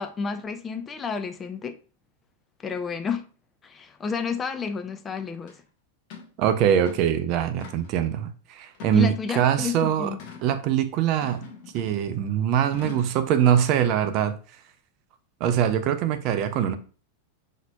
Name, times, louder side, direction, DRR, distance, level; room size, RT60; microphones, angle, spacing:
voice 1, 0.0-1.7 2.6-3.2 3.6-5.5 8.9-10.2, left 6 dB, 20° left, 0.4 m, -30 dB
sound 1, 5.5-5.6 6.1-6.3 6.7-7.1 7.6-8.0 8.7-9.4 10.2-10.5 11.2-12.1 12.7-13.2, left 6 dB, 45° left, 1.0 m, -42 dB
voice 2, 6.4-10.1 10.4-11.5 11.7-14.4 15.4-16.7, right 9 dB, 40° right, 0.4 m, -23 dB
5.6 x 2.8 x 2.2 m
figure-of-eight pair, 90°, 0 cm